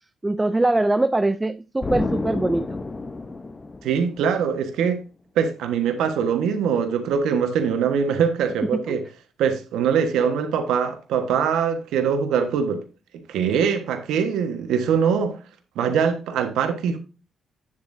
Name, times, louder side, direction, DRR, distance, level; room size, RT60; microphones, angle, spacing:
voice 1, 0.2-2.7 8.7-9.0, right 2 dB, 15° right, 0.4 m, -22 dB
Explosion, 1.8-4.5, left 3 dB, 25° left, 0.8 m, -30 dB
voice 2, 3.8-5.0 5.3-9.0 9.4-12.8 13.3-15.4 15.7-17.0, right 7 dB, 85° right, 1.3 m, -22 dB
9.5 x 7.2 x 2.7 m
cardioid pair, 90°, 0 cm